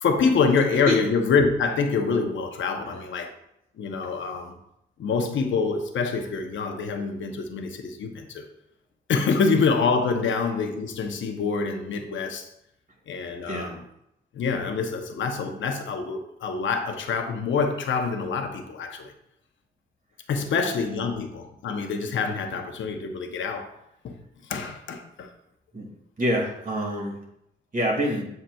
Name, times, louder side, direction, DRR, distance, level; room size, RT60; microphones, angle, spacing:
voice 1, 0.0-3.3 3.8-4.6 5.0-8.4 9.1-12.5 13.1-13.8 14.3-19.1 20.3-23.7 24.0-24.2 24.4-25.3, left 5 dB, 75° left, 0.9 m, -26 dB
voice 2, 26.2-27.1 27.7-28.3, equal, 45° right, 2.3 m, -26 dB
7.6 x 5.7 x 2.4 m
cardioid pair, 65°, 20 cm